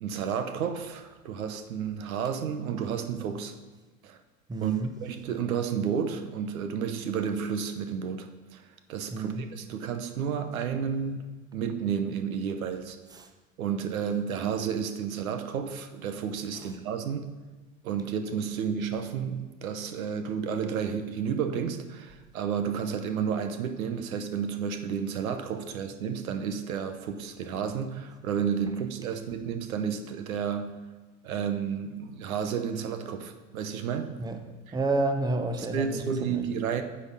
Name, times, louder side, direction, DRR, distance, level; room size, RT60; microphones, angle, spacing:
voice 1, 0.0-3.5 4.0-4.2 4.6-4.7 5.0-8.6 8.9-13.0 13.6-17.3 17.8-30.7 31.2-34.1 35.7-36.8, right 7 dB, 80° right, 8 dB, 0.9 m, -31 dB
voice 2, 4.5-5.0 9.1-9.4 13.1-13.3 16.5-16.8 34.2-34.4 34.7-36.5, right 2 dB, 10° right, 6 dB, 0.7 m, -30 dB
9.6 x 4.4 x 7.2 m, 1.2 s
hypercardioid pair, 90°, 41 cm